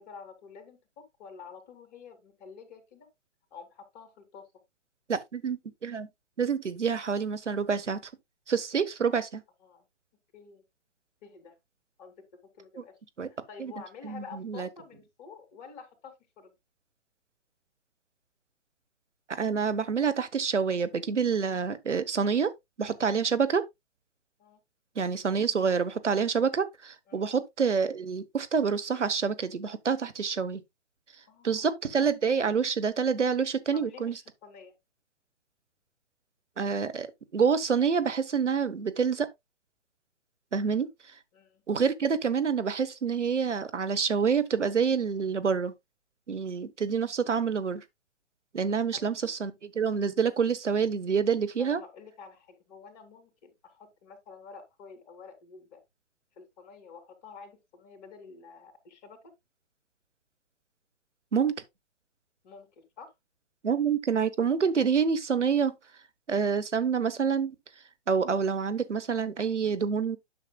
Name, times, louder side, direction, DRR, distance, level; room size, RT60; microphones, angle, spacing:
voice 1, 0.0-3.1 3.5-4.5 9.6-9.8 10.3-10.6 11.2-11.6 12.0-12.1 12.5-12.9 13.3-16.5 24.4-24.6 27.1-27.3 31.3-31.7 33.7-34.7 40.6-40.9 41.3-41.6 48.9-49.0 51.6-55.8 56.4-59.3 62.4-63.1, left 5 dB, 35° left, 2.5 m, -49 dB
voice 2, 5.1-6.1 6.4-8.0 8.5-9.4 13.2-13.3 13.6-13.7 14.0-14.7 19.4-22.5 22.8-23.6 25.0-30.6 31.4-34.1 36.6-39.3 40.5-40.9 41.7-45.7 46.3-47.8 48.5-51.8 61.3-61.5 63.6-65.7 66.3-67.5 68.1-70.2, right 6 dB, 85° right, 1.1 m, -27 dB
9.8 x 6.5 x 2.3 m
figure-of-eight pair, 130°, 35 cm